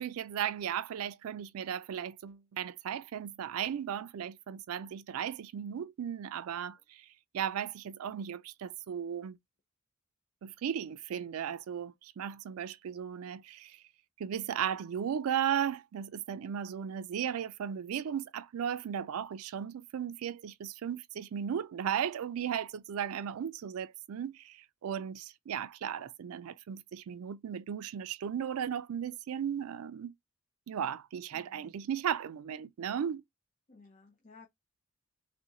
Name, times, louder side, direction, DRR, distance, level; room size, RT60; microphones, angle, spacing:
voice 1, 0.0-7.1 7.3-9.4 10.4-13.8 14.2-30.1 30.7-33.2, right 8 dB, 80° right, 0.4 m, -36 dB
voice 2, 31.3-31.7 33.7-34.5, left 3 dB, 35° left, 0.6 m, -56 dB
3.5 x 2.5 x 3.9 m
head